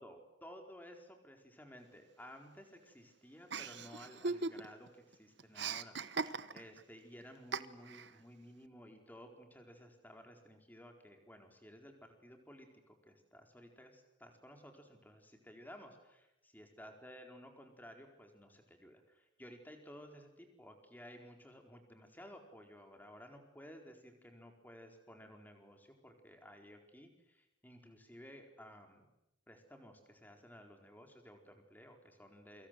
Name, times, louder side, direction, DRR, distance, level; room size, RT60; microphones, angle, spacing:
voice 1, 0.0-29.1 29.5-32.7, equal, 10° left, 4 dB, 4.4 m, -55 dB
Chuckle chortle, 3.5-4.9 5.1-6.8 7.5-8.1, right 4 dB, 60° right, 1.2 m, -39 dB
29.0 x 25.0 x 7.8 m, 0.86 s
head